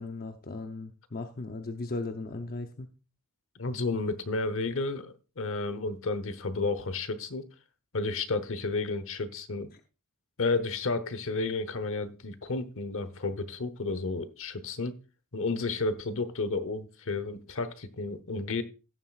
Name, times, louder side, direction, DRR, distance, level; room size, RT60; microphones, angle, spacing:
voice 1, 0.0-2.9, left 3 dB, 45° left, 0.7 m, -37 dB
voice 2, 3.5-7.4 7.9-9.7 10.4-15.0 15.3-18.6, left 3 dB, 65° left, 1.0 m, -32 dB
17.0 x 7.4 x 2.4 m
head